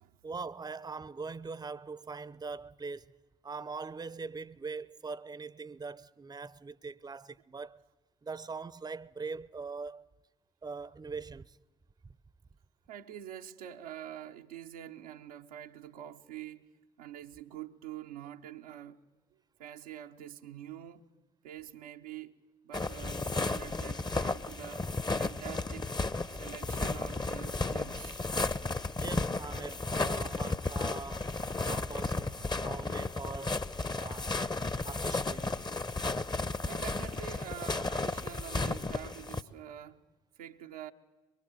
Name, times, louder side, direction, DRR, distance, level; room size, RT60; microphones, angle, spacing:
voice 1, 0.2-3.2 3.4-7.8 8.2-10.1 10.6-11.6 12.0-12.2 28.9-34.4 34.8-35.7, right 4 dB, 20° right, 0.7 m, -42 dB
voice 2, 12.9-16.6 17.0-19.0 19.6-21.1 21.4-24.9 25.2-25.9 26.3-28.2 36.6-40.0 40.4-40.9, right 11 dB, 80° right, 0.8 m, -46 dB
sound 1, 22.7-39.4, left 3 dB, 20° left, 1.0 m, -34 dB
23.0 x 22.5 x 7.9 m
figure-of-eight pair, 40°, 19 cm